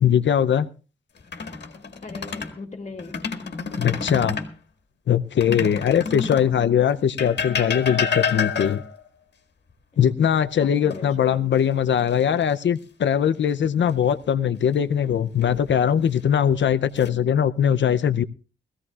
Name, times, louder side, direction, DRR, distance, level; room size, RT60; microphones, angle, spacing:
voice 1, 0.0-0.7 3.8-4.4 5.1-8.8 10.0-18.2, left 8 dB, 85° left, 11 dB, 0.6 m, -21 dB
sound 1, 1.2-2.5 3.0-4.5 5.4-6.5 7.2-9.0 10.9-11.6 12.0-12.2 15.1-15.7 16.5-17.1, left 5 dB, 65° left, 1.8 m, -29 dB
voice 2, 2.0-3.2 10.6-11.7, left 3 dB, 40° left, 2 dB, 2.3 m, -39 dB
21.0 x 15.5 x 2.4 m, 0.34 s
wide cardioid pair, 155°, 19 cm